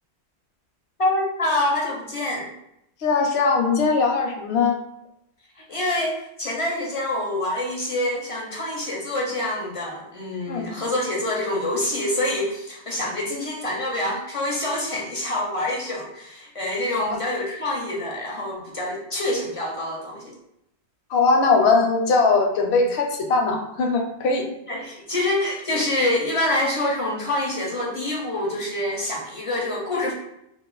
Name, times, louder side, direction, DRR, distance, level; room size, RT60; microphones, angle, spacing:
voice 1, 1.0-2.5 5.6-20.3 24.7-30.1, left 1 dB, 45° left, -2 dB, 0.5 m, -26 dB
voice 2, 3.0-4.8 10.5-10.7 17.0-17.2 21.1-24.5, left 4 dB, 70° left, 2 dB, 0.8 m, -20 dB
2.5 x 2.3 x 3.7 m, 0.82 s
omnidirectional pair, 1.2 m